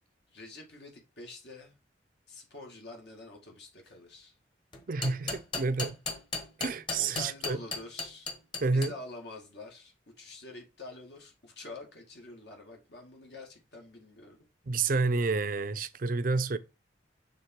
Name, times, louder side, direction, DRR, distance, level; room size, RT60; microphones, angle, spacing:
voice 1, 0.3-1.7 2.3-4.4 7.0-8.3 8.6-14.4, left 2 dB, 70° left, 2.1 m, -47 dB
sound 1, 4.7-8.9, left 3 dB, 25° left, 1.2 m, -35 dB
voice 2, 4.9-6.0 6.6-7.6 8.6-8.9 14.7-16.6, right 3 dB, 50° right, 0.5 m, -29 dB
6.6 x 3.6 x 4.5 m
head